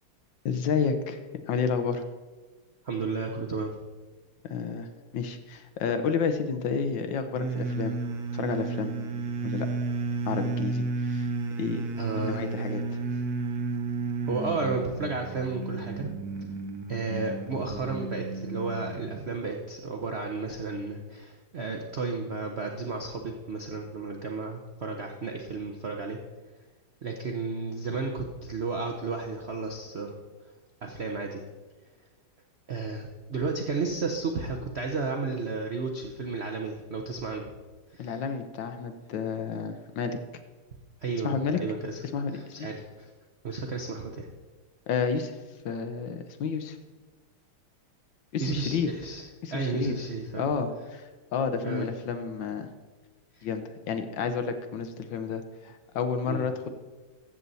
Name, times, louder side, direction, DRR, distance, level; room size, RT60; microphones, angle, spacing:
voice 1, 0.4-1.2 1.5-2.0 4.4-4.9 5.1-8.0 8.3-9.7 10.2-11.3 11.6-11.8 12.2-12.8 38.0-40.2 41.2-41.6 42.1-42.7 44.9-45.4 45.6-46.8 48.3-48.9 49.4-49.9 50.4-52.7 53.4-56.7, left 6 dB, 65° left, 8 dB, 1.3 m, -30 dB
voice 2, 2.8-3.7 12.0-12.4 14.3-16.1 16.9-26.2 27.0-30.1 30.8-31.5 32.7-37.4 37.9-38.1 41.0-42.0 42.3-43.1 43.4-44.3 48.4-49.2 49.5-50.4 51.6-51.9 53.4-53.5 56.3-56.5, right 4 dB, 80° right, 2 dB, 0.5 m, -32 dB
sound 1, 7.3-19.3, right 3 dB, 55° right, 1.1 m, -32 dB
14.0 x 7.7 x 4.1 m, 1.3 s
omnidirectional pair, 2.4 m